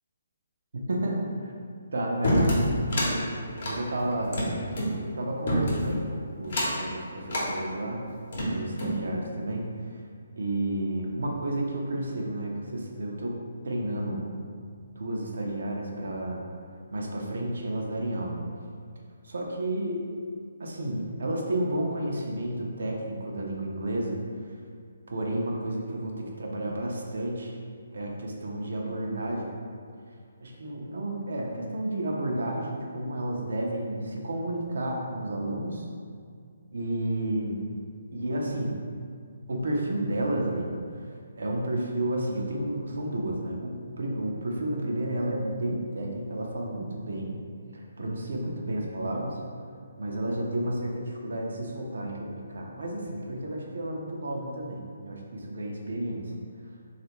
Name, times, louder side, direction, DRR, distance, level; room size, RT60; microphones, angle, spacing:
voice 1, 0.7-1.5 1.9-3.4 3.6-4.5 5.2-8.0 8.4-10.0 10.4-13.4 13.6-14.3 14.7-16.4 16.9-18.4 19.2-20.1 20.6-24.2 24.4-24.5 25.1-27.5 27.9-29.5 30.1-30.2 30.4-35.9 36.7-37.7 38.1-38.8 39.5-47.4 47.7-49.4 50.0-56.3, right 1 dB, 70° right, 0 dB, 0.5 m, -31 dB
sound 1, 2.2-3.1 3.5-4.9 5.5-6.0 6.4-6.9 7.3-7.5 8.1-9.0, equal, 60° left, 0.8 m, -27 dB
3.2 x 2.4 x 2.9 m, 2.2 s
hypercardioid pair, 150°, 0 cm